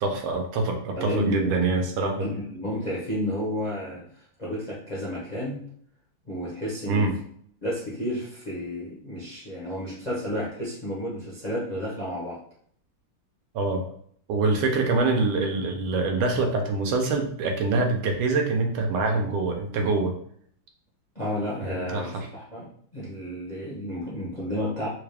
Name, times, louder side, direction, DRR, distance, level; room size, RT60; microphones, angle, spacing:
voice 1, 0.0-2.3 6.9-7.1 13.5-13.8 14.3-20.1 21.6-22.3, right 3 dB, 80° right, 3 dB, 1.5 m, -25 dB
voice 2, 1.0-1.5 2.2-5.6 6.2-7.1 7.6-12.4 21.1-24.9, equal, 40° left, -7 dB, 0.5 m, -31 dB
4.0 x 2.3 x 3.3 m, 0.64 s
omnidirectional pair, 2.2 m